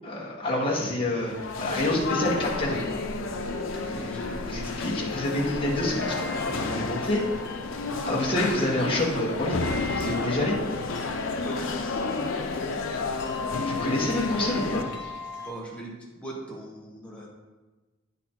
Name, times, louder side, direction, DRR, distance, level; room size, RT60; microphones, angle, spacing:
voice 1, 0.0-1.3 1.6-2.8 3.9-4.0 4.4-7.2 8.0-10.6 13.6-14.8, left 1 dB, 25° left, -5 dB, 1.3 m, -28 dB
sound 1, 1.2-14.8, left 3 dB, 90° left, 0.7 m, -31 dB
voice 2, 3.9-4.4 6.5-6.6 11.4-12.0 15.4-17.3, right 1 dB, 5° left, -3 dB, 1.2 m, -40 dB
sound 2, 5.5-15.5, left 3 dB, 60° left, 0.9 m, -41 dB
9.2 x 4.1 x 4.3 m, 1.2 s
head